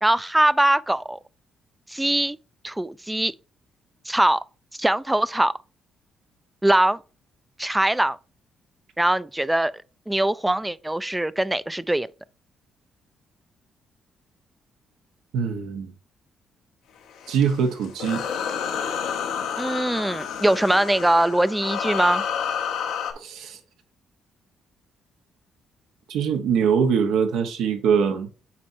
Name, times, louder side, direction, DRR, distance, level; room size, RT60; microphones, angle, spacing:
voice 1, 0.0-1.2 1.9-2.4 2.6-3.3 4.1-4.4 4.8-5.5 6.6-7.0 7.6-8.2 9.0-9.7 10.1-12.1 19.6-22.2, right 1 dB, 10° right, 0.4 m, -22 dB
voice 2, 15.3-15.9 17.3-18.2 23.2-23.6 26.1-28.3, right 7 dB, 85° right, 1.1 m, -23 dB
sound 1, 17.1-23.1, left 7 dB, 90° left, 1.1 m, -29 dB
8.6 x 4.3 x 2.7 m
cardioid pair, 90°, 0 cm